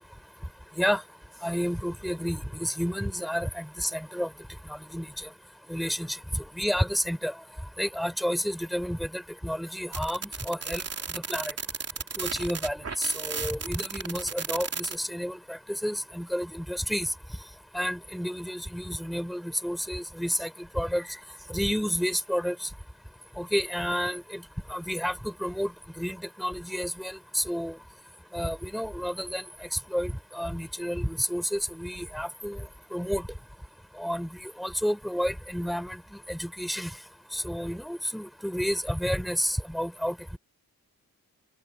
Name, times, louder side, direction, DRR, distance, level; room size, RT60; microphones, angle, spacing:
voice 1, 1.4-4.3 4.7-5.1 5.7-7.3 7.8-10.8 11.1-11.5 12.2-17.1 17.7-20.5 20.7-21.1 21.5-22.6 23.4-24.4 24.7-25.7 26.0-27.7 28.3-29.4 29.9-32.6 32.9-33.2 34.0-36.0 36.3-36.9 37.3-40.4, equal, ahead, 4.4 m, -30 dB
sound 1, 9.9-15.0, right 5 dB, 45° right, 2.9 m, -34 dB
open air
wide cardioid pair, 175°, 35 cm